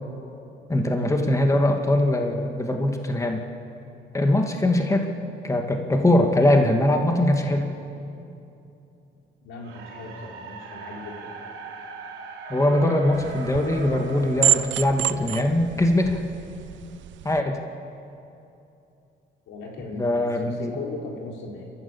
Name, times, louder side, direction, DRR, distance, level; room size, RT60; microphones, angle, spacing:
voice 1, 0.7-3.5 4.1-5.1 5.4-7.7 12.5-16.2 17.2-17.6 19.9-20.7, left 1 dB, 15° left, 3 dB, 2.0 m, -22 dB
voice 2, 9.4-11.4 19.5-21.6, left 3 dB, 90° left, -1 dB, 4.3 m, -38 dB
sound 1, 9.6-15.8, right 4 dB, 85° right, 3.2 m, -40 dB
sound 2, 13.1-17.4, right 12 dB, 70° right, 0.6 m, -28 dB
29.0 x 14.0 x 7.4 m, 2.8 s
cardioid pair, 90°, 20 cm